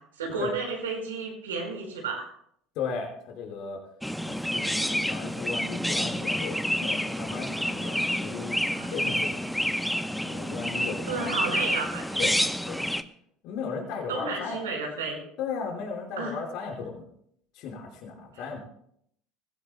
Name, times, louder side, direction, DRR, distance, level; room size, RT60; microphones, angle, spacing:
voice 1, 0.1-2.3 8.7-9.2 11.0-12.3 14.1-15.2 16.2-16.4 18.3-18.6, right 4 dB, 85° right, 1 dB, 4.9 m, -32 dB
voice 2, 2.7-3.8 4.2-8.6 8.9-9.3 10.2-11.3 12.1-12.4 12.7-12.8 13.4-14.6 15.4-17.1 17.5-18.6, left 5 dB, 60° left, 0 dB, 4.7 m, -36 dB
Chirp tweet, 4.0-13.0, equal, ahead, 0.8 m, -29 dB
22.0 x 16.0 x 2.2 m, 0.68 s
hypercardioid pair, 75°, 0 cm